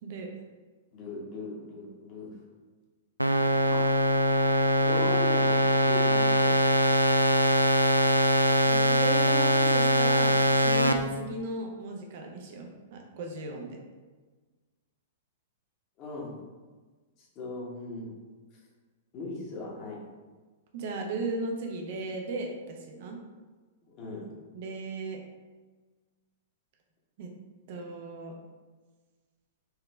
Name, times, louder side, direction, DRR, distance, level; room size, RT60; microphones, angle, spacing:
voice 1, 0.9-2.3 3.6-3.9 4.8-6.6 16.0-16.4 17.2-18.1 19.1-20.0 23.8-24.3, left 3 dB, 35° left, -3 dB, 1.2 m, -39 dB
sound 1, 3.2-10.9, right 1 dB, 90° right, 0.3 m, -22 dB
voice 2, 8.7-13.8 20.7-23.2 24.5-25.2 27.2-27.3 27.7-28.3, right 3 dB, 50° right, 2 dB, 0.8 m, -36 dB
4.7 x 3.1 x 3.4 m, 1.3 s
figure-of-eight pair, 105°, 0 cm